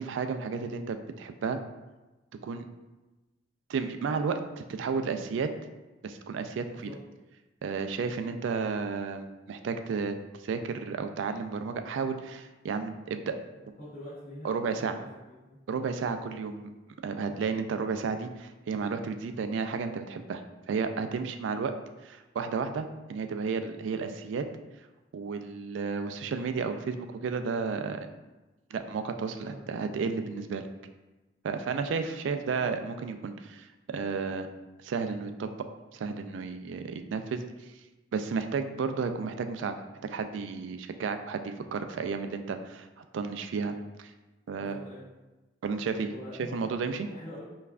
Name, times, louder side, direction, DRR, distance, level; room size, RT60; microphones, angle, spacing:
voice 1, 0.0-1.6 2.4-2.6 3.7-5.5 6.0-6.9 7.6-10.2 10.4-13.4 14.4-15.0 15.7-16.7 17.0-20.4 20.7-21.7 22.0-24.5 25.1-28.1 28.7-30.6 31.4-34.5 34.8-35.5 35.9-37.4 38.1-39.8 40.0-42.9 43.1-44.1 44.5-44.8 45.6-46.1 46.5-47.1, right 5 dB, 80° right, 9 dB, 0.3 m, -32 dB
voice 2, 6.7-7.0 13.5-15.0 15.4-15.6 29.4-29.9 44.5-45.0 46.1-47.4, left 1 dB, 45° left, -12 dB, 1.1 m, -45 dB
5.4 x 2.3 x 2.4 m, 1.1 s
head